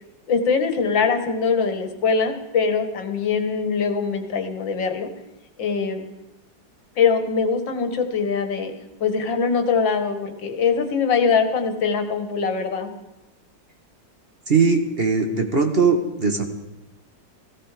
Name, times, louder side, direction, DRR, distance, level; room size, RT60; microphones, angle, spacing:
voice 1, 0.3-5.1 5.6-6.1 7.0-8.7 9.0-12.9, left 5 dB, 80° left, 7 dB, 2.3 m, -22 dB
voice 2, 14.5-16.4, right 4 dB, 35° right, 5 dB, 1.5 m, -20 dB
17.5 x 16.0 x 5.0 m, 1.0 s
omnidirectional pair, 2.0 m